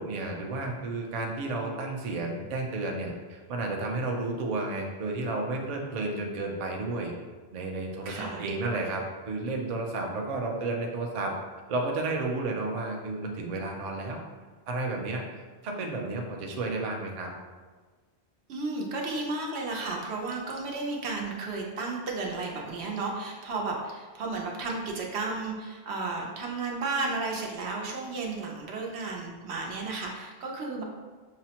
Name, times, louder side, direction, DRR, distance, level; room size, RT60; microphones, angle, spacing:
voice 1, 0.0-7.1 7.5-11.3 11.7-14.2 14.7-17.3, right 2 dB, 50° right, 1 dB, 0.5 m, -32 dB
voice 2, 8.0-8.4 18.5-30.8, right 3 dB, 85° right, -1 dB, 0.9 m, -33 dB
5.7 x 2.0 x 2.8 m, 1.4 s
omnidirectional pair, 1.1 m